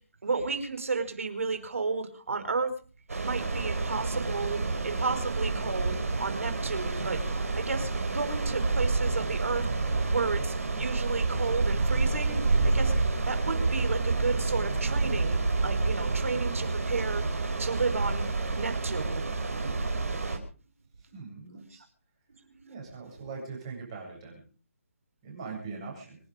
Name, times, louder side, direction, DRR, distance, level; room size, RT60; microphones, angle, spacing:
voice 1, 0.2-2.7 3.2-7.2 7.5-9.7 10.1-12.9 13.2-17.2 17.6-18.3 18.5-19.7 21.5-21.6 22.6-22.7, right 4 dB, 70° right, 8 dB, 4.9 m, -32 dB
sound 1, 3.1-20.4, right 3 dB, 90° right, 5.0 m, -28 dB
voice 2, 21.1-21.8 22.7-24.4 25.2-26.2, right 4 dB, 25° right, 0 dB, 7.8 m, -41 dB
26.0 x 10.5 x 5.2 m, 0.40 s
hypercardioid pair, 170°, 8 cm